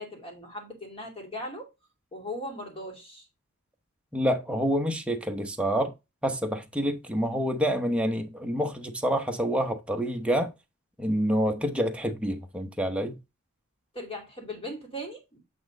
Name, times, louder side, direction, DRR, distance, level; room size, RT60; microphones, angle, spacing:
voice 1, 0.0-1.7 2.1-3.3 13.9-15.4, left 1 dB, 25° left, 2.6 m, -38 dB
voice 2, 4.1-5.9 6.2-10.5 11.0-13.2, equal, 5° right, 0.9 m, -27 dB
8.5 x 3.6 x 3.8 m
head